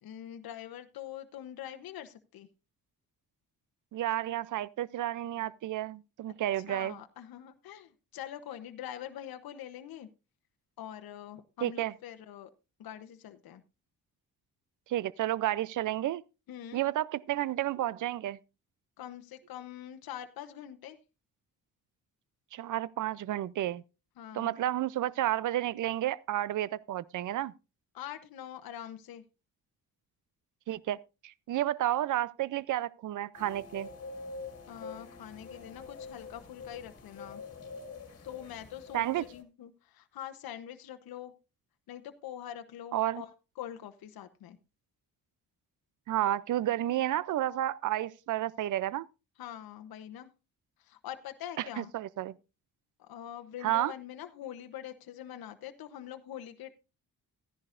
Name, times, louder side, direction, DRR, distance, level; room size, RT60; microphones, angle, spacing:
voice 1, 0.0-2.5 5.4-5.5 6.7-10.1 10.8-12.5 12.8-13.6 16.5-16.8 19.0-21.0 24.2-24.5 27.9-29.2 34.7-37.4 38.2-41.3 41.9-44.6 49.4-50.3 50.8-51.9 53.0-56.7, left 11 dB, 75° left, 0.9 m, -44 dB
voice 2, 3.9-7.0 11.6-11.9 14.9-16.2 16.7-18.4 22.5-23.8 24.3-27.5 30.7-31.0 31.2-33.9 38.9-39.2 42.9-43.2 46.1-49.1 51.6-52.3 53.6-53.9, right 13 dB, 55° right, 0.5 m, -31 dB
sound 1, 33.3-39.4, left 4 dB, 40° left, 2.1 m, -46 dB
14.5 x 10.5 x 2.5 m
cardioid pair, 70°, 37 cm